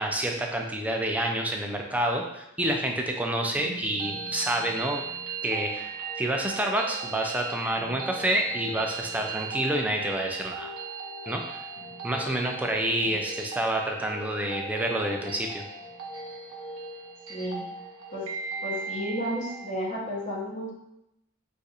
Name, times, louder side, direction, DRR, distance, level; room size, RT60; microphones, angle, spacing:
voice 1, 0.0-5.0 5.4-10.7 11.3-11.6 12.0-15.6, right 1 dB, 5° right, 2 dB, 0.3 m, -28 dB
sound 1, 3.8-19.7, right 4 dB, 80° right, 0.6 m, -38 dB
voice 2, 17.3-17.6 18.1-18.3 18.6-20.7, equal, 35° left, -4 dB, 0.8 m, -32 dB
2.5 x 2.4 x 4.0 m, 0.85 s
head